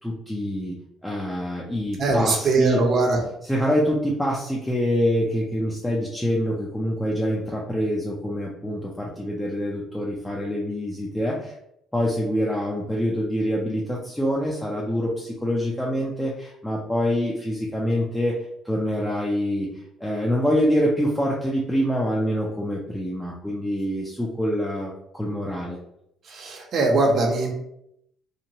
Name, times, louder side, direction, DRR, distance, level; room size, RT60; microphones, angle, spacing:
voice 1, 0.0-2.8 3.4-11.5 11.9-18.4 18.6-19.7 20.0-25.8, equal, 5° left, -4 dB, 0.5 m, -25 dB
voice 2, 2.0-3.2 26.3-27.5, right 3 dB, 50° right, 1 dB, 0.7 m, -21 dB
2.8 x 2.2 x 2.7 m, 0.76 s
cardioid pair, 100°, 0 cm